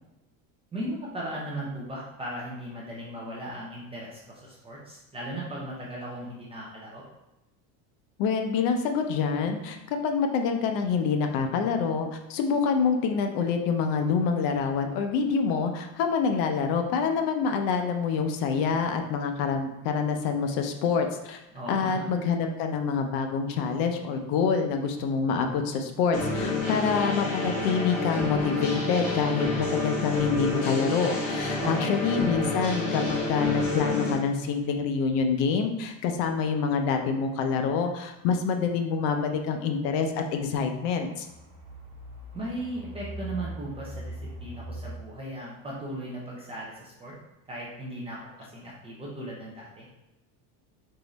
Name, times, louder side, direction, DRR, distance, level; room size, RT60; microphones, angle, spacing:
voice 1, 0.7-7.0 21.5-22.1 31.6-31.9 42.3-44.1 44.4-47.1 47.5-49.9, right 1 dB, 15° right, -5 dB, 0.3 m, -37 dB
voice 2, 8.2-21.4 21.7-41.3, left 5 dB, 55° left, 5 dB, 0.6 m, -26 dB
sound 1, 26.1-34.1, left 3 dB, 35° left, 1.3 m, -29 dB
sound 2, 35.6-35.7 36.4-36.7 37.7-37.8 39.7-40.0 40.5-44.9, right 1 dB, 65° right, 1.2 m, -41 dB
3.8 x 3.0 x 3.9 m, 0.95 s
cardioid pair, 165°, 41 cm